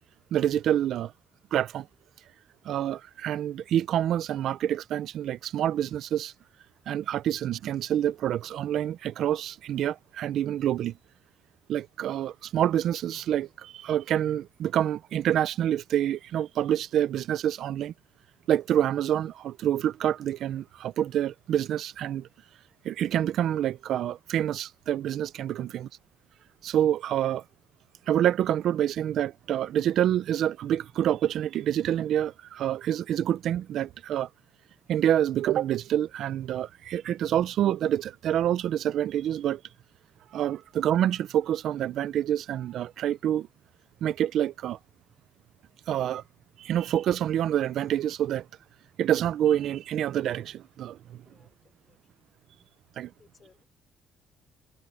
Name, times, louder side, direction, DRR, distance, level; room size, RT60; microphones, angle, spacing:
voice 1, 0.3-1.1 1.5-1.9 2.6-6.3 6.9-10.9 11.7-17.9 18.5-22.3 22.8-25.9 26.6-27.4 28.1-34.3 34.9-39.6 40.3-43.5 44.0-44.8 45.9-46.2 46.6-48.5 49.0-51.2 53.0-53.1, right 11 dB, 65° right, 0.6 m, -27 dB
voice 2, 25.4-25.8 51.2-52.0 53.2-53.7, left 5 dB, 30° left, 4.1 m, -63 dB
cardioid pair, 120°, 0 cm